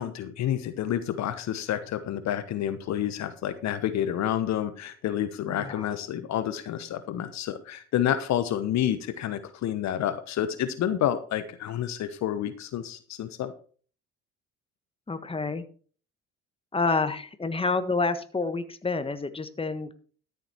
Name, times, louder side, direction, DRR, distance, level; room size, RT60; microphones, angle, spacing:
voice 1, 0.0-13.5, left 11 dB, 55° left, 12 dB, 1.1 m, -29 dB
voice 2, 5.5-5.9 15.1-15.6 16.7-19.9, left 3 dB, 15° left, 10 dB, 1.5 m, -28 dB
13.0 x 7.1 x 4.6 m, 0.42 s
hypercardioid pair, 55°, 32 cm